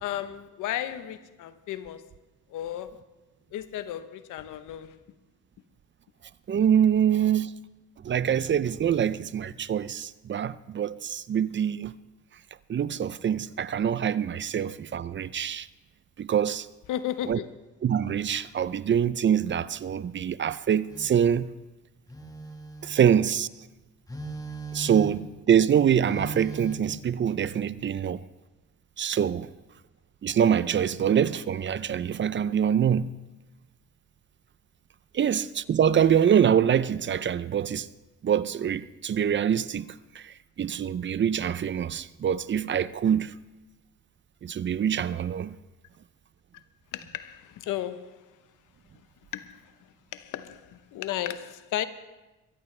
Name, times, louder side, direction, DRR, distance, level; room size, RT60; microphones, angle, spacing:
voice 1, 0.0-2.1 2.5-3.0 3.5-5.0 16.9-17.5 46.9-48.2 49.3-49.7 50.1-51.8, left 12 dB, 85° left, 0.9 m, -34 dB
voice 2, 6.5-7.5 8.0-12.0 12.7-15.7 16.2-16.7 17.3-17.4 17.8-21.5 22.8-23.5 24.7-28.2 29.0-29.5 30.2-33.1 35.1-37.9 38.2-43.3 44.4-45.6, right 8 dB, 40° right, 0.5 m, -25 dB
Telephone, 20.9-21.2 22.1-23.2 24.1-25.3 26.1-26.8, right 2 dB, 10° left, 1.4 m, -38 dB
22.5 x 15.0 x 3.3 m
cardioid pair, 90°, 30 cm